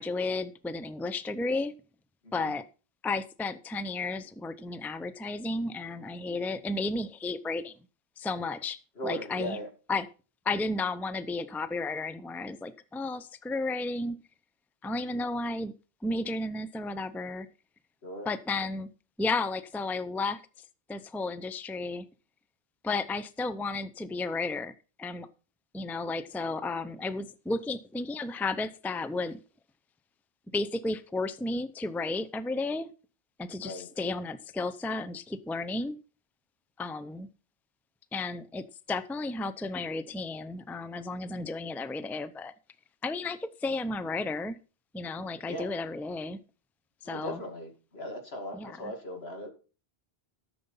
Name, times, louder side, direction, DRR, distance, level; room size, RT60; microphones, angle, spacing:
voice 1, 0.0-1.7 2.3-2.6 3.0-7.7 8.2-9.6 9.9-10.1 10.4-14.2 14.8-15.7 16.0-17.5 18.3-18.9 19.2-20.4 20.9-22.1 22.8-25.3 25.7-29.4 30.5-32.9 33.4-36.0 36.8-37.3 38.1-42.5 43.0-44.6 44.9-46.4 47.0-47.4 48.5-48.9, left 3 dB, ahead, 14 dB, 0.5 m, -33 dB
voice 2, 9.0-9.7 15.0-15.3 18.0-18.3 33.6-33.9 45.5-45.7 47.0-49.5, equal, 85° left, 4 dB, 2.8 m, -39 dB
13.5 x 6.9 x 5.5 m, 0.35 s
omnidirectional pair, 1.0 m